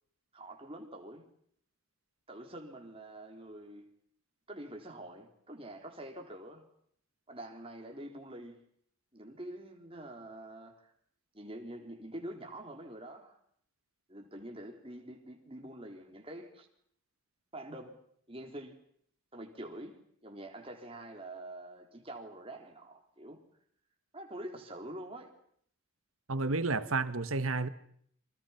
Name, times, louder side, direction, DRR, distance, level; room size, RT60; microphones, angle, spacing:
voice 1, 0.3-1.2 2.3-3.8 4.5-6.7 7.3-8.7 9.1-10.9 11.3-13.4 14.1-16.7 17.5-18.0 18.3-18.8 19.3-23.4 24.1-25.3, right 1 dB, 25° right, 3.9 m, -46 dB
voice 2, 26.3-27.7, right 3 dB, 80° right, 1.6 m, -31 dB
30.0 x 25.5 x 5.9 m
head